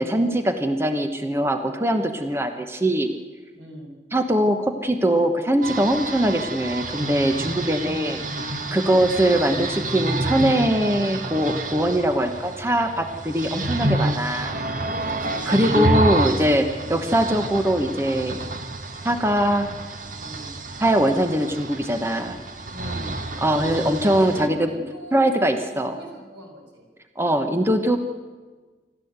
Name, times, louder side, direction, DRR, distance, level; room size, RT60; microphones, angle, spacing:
voice 1, 0.0-3.1 4.1-8.2 8.7-14.6 15.5-18.5 19.0-19.7 20.8-22.4 23.4-24.7 25.1-26.0 27.2-28.0, right 1 dB, 15° right, 7 dB, 1.0 m, -22 dB
voice 2, 3.5-3.9 7.8-8.1 8.6-8.9 14.8-15.8 16.1-16.7 20.2-20.5 22.7-23.1 23.5-23.9 24.2-26.9, right 1 dB, 85° right, 1 dB, 5.9 m, -40 dB
sound 1, 5.6-24.5, right 2 dB, 45° right, 1.5 m, -29 dB
27.0 x 13.0 x 8.1 m, 1.4 s
head